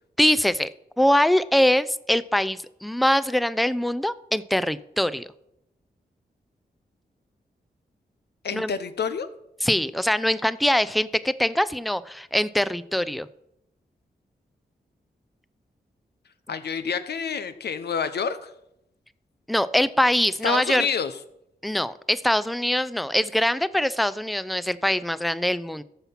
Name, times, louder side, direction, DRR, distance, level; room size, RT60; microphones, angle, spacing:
voice 1, 0.2-0.7 1.0-5.3 8.5-8.7 9.6-13.3 19.5-20.9 21.6-25.8, left 1 dB, ahead, 16 dB, 0.5 m, -23 dB
voice 2, 8.4-9.3 16.5-18.5 20.4-21.1, left 6 dB, 75° left, 12 dB, 0.9 m, -28 dB
14.0 x 5.6 x 5.9 m, 0.82 s
cardioid pair, 55°, 17 cm